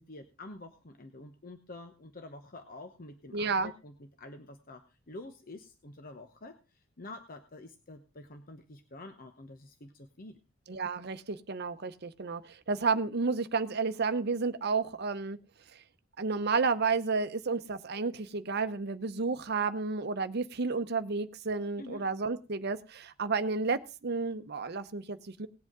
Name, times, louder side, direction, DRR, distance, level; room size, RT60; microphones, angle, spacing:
voice 1, 0.0-10.4 21.8-22.0, left 2 dB, 45° left, 1.0 m, -48 dB
voice 2, 3.3-3.7 10.7-15.4 16.2-25.5, right 4 dB, 55° right, 0.8 m, -31 dB
18.5 x 8.1 x 3.7 m
head